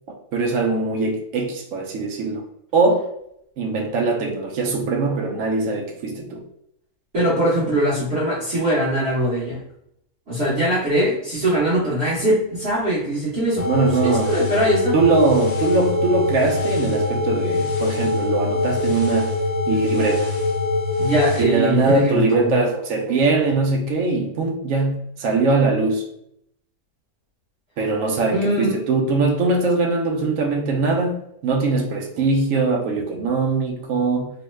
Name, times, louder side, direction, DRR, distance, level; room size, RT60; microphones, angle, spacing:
voice 1, 0.3-2.4 2.7-3.1 3.6-6.4 13.7-14.3 14.9-19.3 19.7-20.3 21.4-26.0 27.8-34.3, right 3 dB, 70° right, 2 dB, 0.8 m, -21 dB
voice 2, 7.1-9.6 10.3-13.7 14.0-15.0 21.0-22.6 28.3-28.7, right 1 dB, 45° right, -9 dB, 1.1 m, -21 dB
sound 1, 13.6-21.4, left 2 dB, 90° left, 0.5 m, -23 dB
3.0 x 2.1 x 3.1 m, 0.75 s
omnidirectional pair, 1.7 m